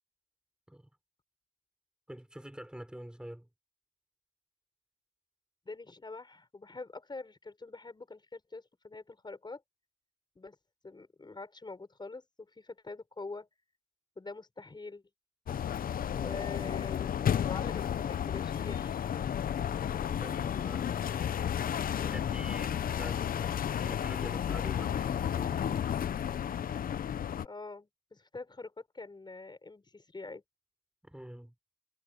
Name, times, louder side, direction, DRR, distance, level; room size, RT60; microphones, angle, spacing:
voice 1, 2.1-3.5 20.2-20.9 22.0-26.0 31.0-31.5, right 1 dB, 5° right, 4.9 m, -46 dB
voice 2, 5.7-9.6 10.4-10.6 10.8-13.5 14.2-15.0 16.1-19.0 27.4-30.4, left 3 dB, 25° left, 6.0 m, -45 dB
sound 1, 15.5-27.5, left 9 dB, 50° left, 0.6 m, -32 dB
cardioid pair, 115°, 18 cm